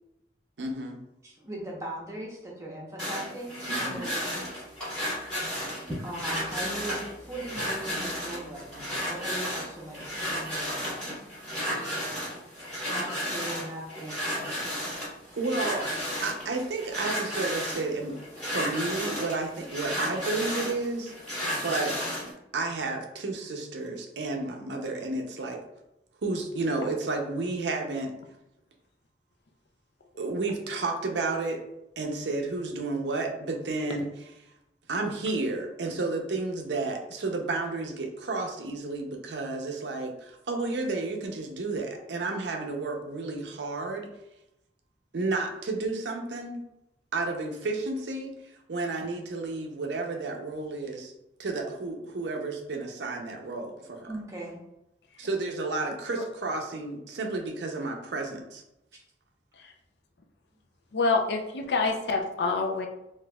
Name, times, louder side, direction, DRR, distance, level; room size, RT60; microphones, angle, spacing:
voice 1, 0.6-1.0 3.7-4.1 15.4-15.9 16.2-21.1 21.5-22.0 22.5-25.6 26.2-28.1 30.2-31.6 32.0-34.1 34.9-44.1 45.1-46.6 47.1-51.1 51.4-54.1 55.2-58.6, right 3 dB, 75° right, 2 dB, 0.5 m, -31 dB
voice 2, 1.2-4.4 6.0-11.1 12.9-15.0 54.1-54.6, right 1 dB, 15° right, -3 dB, 0.7 m, -39 dB
sound 1, 3.0-22.3, equal, 5° left, 1.4 m, -33 dB
voice 3, 60.9-62.9, left 3 dB, 70° left, 3 dB, 0.5 m, -27 dB
4.0 x 2.5 x 2.2 m, 0.87 s
head